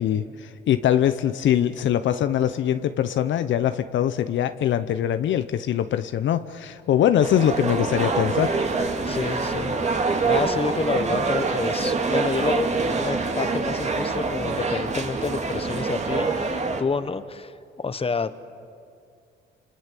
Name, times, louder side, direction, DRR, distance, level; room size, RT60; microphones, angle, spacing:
voice 1, 0.0-8.6, left 10 dB, 70° left, 11 dB, 0.9 m, -22 dB
sound 1, 7.2-16.8, right 4 dB, 35° right, 2.4 m, -25 dB
voice 2, 9.0-18.4, left 4 dB, 30° left, 12 dB, 1.3 m, -29 dB
28.5 x 27.0 x 7.6 m, 2.3 s
cardioid pair, 90°, 20 cm